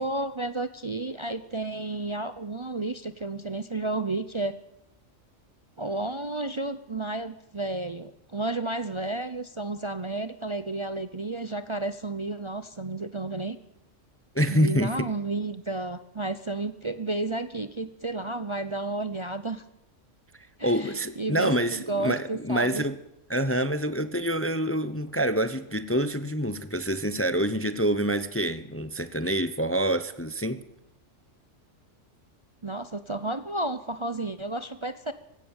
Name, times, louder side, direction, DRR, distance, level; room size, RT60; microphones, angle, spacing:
voice 1, 0.0-4.6 5.8-13.6 14.5-19.6 20.6-22.9 32.6-35.1, right 2 dB, 30° right, 0.7 m, -32 dB
voice 2, 14.3-15.1 20.6-23.0 23.3-30.6, equal, 15° left, 0.7 m, -26 dB
19.5 x 16.0 x 8.9 m
omnidirectional pair, 1.3 m